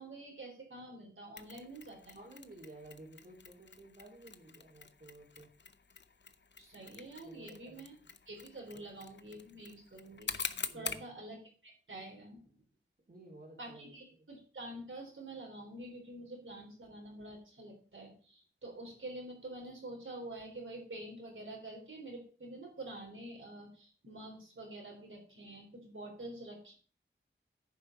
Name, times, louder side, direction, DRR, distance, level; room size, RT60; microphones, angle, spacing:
voice 1, 0.0-2.2 6.6-7.9 8.3-11.4 11.6-12.5 13.6-26.7, right 2 dB, 80° right, -1 dB, 3.8 m, -47 dB
Mechanisms, 1.4-11.1, left 5 dB, 60° left, 0.7 m, -46 dB
voice 2, 2.1-5.5 7.2-7.9 8.7-8.8 10.6-11.0 13.1-14.3, right 1 dB, 45° right, -1 dB, 3.1 m, -54 dB
10.0 x 5.4 x 5.5 m, 0.40 s
wide cardioid pair, 60°, 20 cm